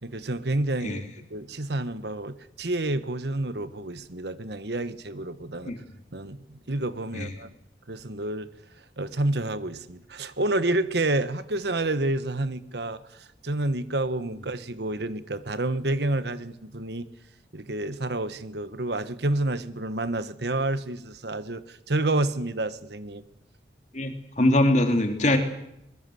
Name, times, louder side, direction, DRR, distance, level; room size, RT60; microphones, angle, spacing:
voice 1, 0.0-1.0 1.3-5.7 6.1-7.5 7.9-8.5 9.0-17.1 17.5-23.2, right 2 dB, 65° right, 13 dB, 1.3 m, -29 dB
voice 2, 23.9-25.4, left 1 dB, 40° left, 5 dB, 3.1 m, -22 dB
24.0 x 21.0 x 7.8 m, 0.81 s
head